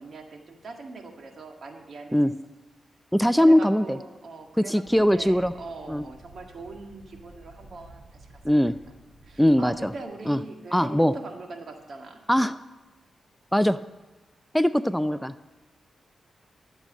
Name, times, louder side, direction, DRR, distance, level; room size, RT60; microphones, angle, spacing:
voice 1, 0.0-2.2 3.4-8.3 9.2-12.2 15.0-15.3, right 3 dB, 65° right, 4 dB, 1.8 m, -41 dB
voice 2, 3.1-4.0 4.6-5.5 5.9-6.0 8.4-8.8 9.4-9.9 10.3-10.4 10.7-11.1 12.3-12.6 13.5-13.8 14.5-15.3, equal, 5° left, 14 dB, 0.4 m, -21 dB
sound 1, 4.8-10.0, right 1 dB, 50° right, 3.9 m, -51 dB
12.5 x 7.7 x 7.5 m, 1.2 s
supercardioid pair, 50°, 0 cm